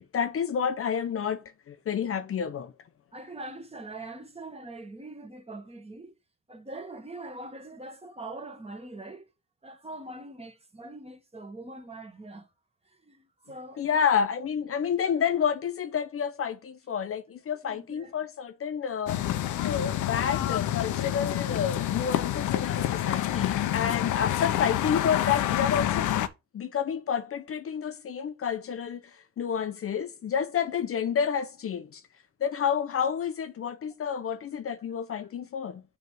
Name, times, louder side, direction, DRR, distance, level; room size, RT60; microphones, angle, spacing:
voice 1, 0.0-2.7 13.8-19.2 19.6-26.1 26.5-29.0 29.4-32.0 32.4-35.8, left 7 dB, 50° left, 0.7 m, -29 dB
voice 2, 3.1-6.1 6.5-9.3 9.6-12.5 12.9-14.2 17.6-18.1 35.1-35.3, right 2 dB, 20° right, 1.8 m, -43 dB
sound 1, 19.1-26.3, left 12 dB, 80° left, 0.8 m, -28 dB
6.7 x 3.4 x 6.1 m
cardioid pair, 90°, 30 cm